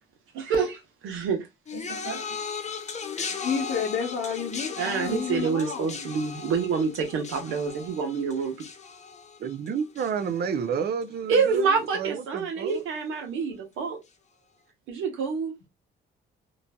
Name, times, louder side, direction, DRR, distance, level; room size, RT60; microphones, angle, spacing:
voice 1, 0.3-1.5 1.7-2.2 4.8-8.5 11.3-14.0 14.9-15.5, right 5 dB, 90° right, 1.1 m, -27 dB
sound 1, 1.7-11.0 11.3-11.8 12.7-12.8, left 5 dB, 35° left, 0.6 m, -38 dB
voice 2, 3.2-6.1, left 6 dB, 65° left, 0.9 m, -31 dB
voice 3, 9.4-12.8, right 7 dB, 55° right, 0.5 m, -30 dB
2.9 x 2.6 x 2.2 m
cardioid pair, 90°, 20 cm